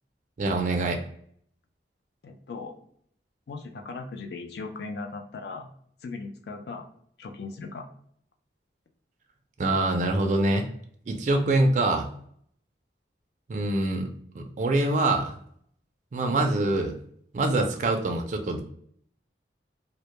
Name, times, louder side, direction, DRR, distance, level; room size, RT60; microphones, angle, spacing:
voice 1, 0.4-1.0 9.6-10.7 11.1-12.1 13.5-14.1 14.3-15.3 16.1-16.9 17.3-18.6, right 2 dB, 40° right, 4 dB, 0.3 m, -24 dB
voice 2, 2.2-2.7 3.5-5.7 6.0-6.9 7.2-7.9, left 3 dB, 65° left, 4 dB, 0.4 m, -38 dB
2.1 x 2.1 x 2.8 m, 0.64 s
head